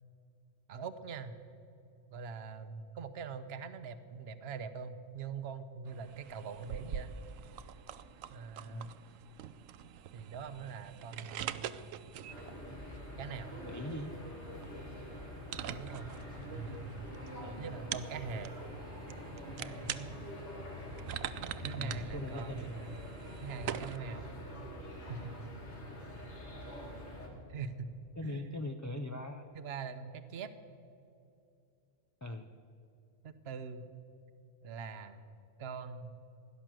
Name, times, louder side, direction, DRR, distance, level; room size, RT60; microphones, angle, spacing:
voice 1, 0.7-1.3 2.1-7.1 8.3-9.0 10.1-11.7 13.2-13.5 15.6-16.1 16.5-17.0 17.6-18.6 19.6-20.2 21.6-23.0 23.4-24.3 25.1-25.5 25.8-26.0 27.5-27.9 28.2-28.6 29.5-30.5 33.2-33.8 34.6-35.2 35.6-36.1, right 5 dB, 55° right, 11 dB, 1.1 m, -43 dB
sound 1, 5.9-24.0, right 9 dB, 90° right, 1.0 m, -45 dB
sound 2, 12.3-27.3, left 1 dB, 60° left, 3.1 m, -46 dB
voice 2, 13.6-14.1 17.4-17.6 21.8-22.7 28.2-29.5 32.2-32.5, left 1 dB, 20° left, 5 dB, 0.4 m, -40 dB
16.5 x 11.0 x 7.6 m, 2.7 s
omnidirectional pair, 1.3 m